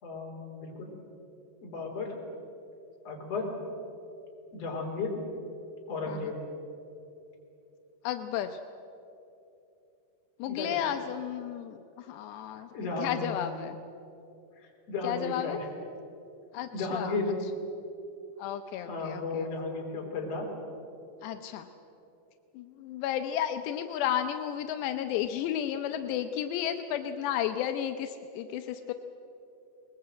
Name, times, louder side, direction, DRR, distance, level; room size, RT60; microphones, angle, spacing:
voice 1, 0.0-0.9 1.6-2.1 3.0-3.5 4.5-5.1 5.9-6.4 10.5-10.8 12.7-13.3 14.6-15.7 16.7-17.3 18.9-20.5, left 3 dB, 40° left, 0 dB, 4.3 m, -34 dB
voice 2, 8.0-8.6 10.4-12.7 13.0-13.8 15.0-15.6 16.5-17.2 18.4-19.5 21.2-21.7 22.5-28.9, left 10 dB, 85° left, 7 dB, 2.9 m, -33 dB
23.0 x 20.5 x 7.8 m, 2.9 s
omnidirectional pair, 4.9 m